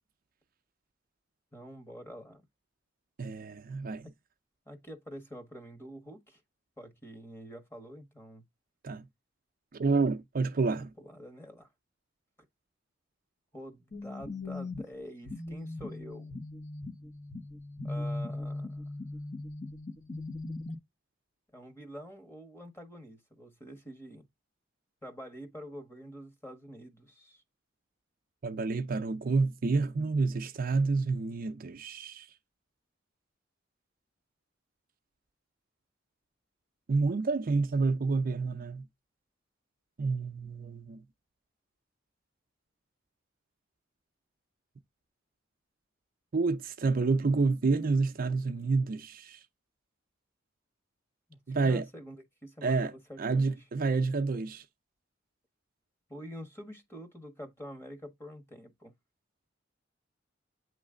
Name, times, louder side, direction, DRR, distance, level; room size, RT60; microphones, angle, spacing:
voice 1, 1.5-2.4 4.7-6.4 6.8-8.4 10.5-11.7 13.5-16.4 17.8-18.8 21.5-24.2 25.0-27.4 51.3-53.7 56.1-58.9, equal, 15° left, 1.4 m, -47 dB
voice 2, 3.2-4.1 8.8-9.0 9.7-10.9 28.4-32.3 36.9-38.9 40.0-41.0 46.3-49.4 51.5-51.8 52.6-52.9 53.2-54.6, right 4 dB, 45° right, 0.5 m, -29 dB
sound 1, 13.9-20.7, left 2 dB, 40° left, 1.0 m, -39 dB
8.8 x 3.1 x 3.7 m
head